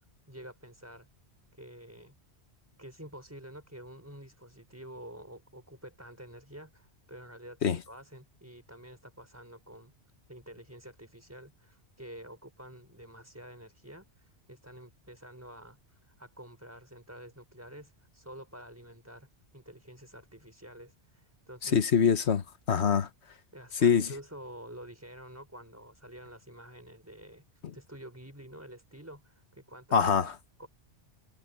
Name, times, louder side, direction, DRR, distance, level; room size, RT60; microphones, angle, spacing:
voice 1, 0.3-1.1 1.5-2.1 2.8-9.9 10.3-21.8 23.5-30.7, right 1 dB, 15° right, 4.6 m, -49 dB
voice 2, 21.6-23.1 23.8-24.1 29.9-30.3, left 7 dB, 75° left, 1.4 m, -24 dB
omnidirectional pair, 1.1 m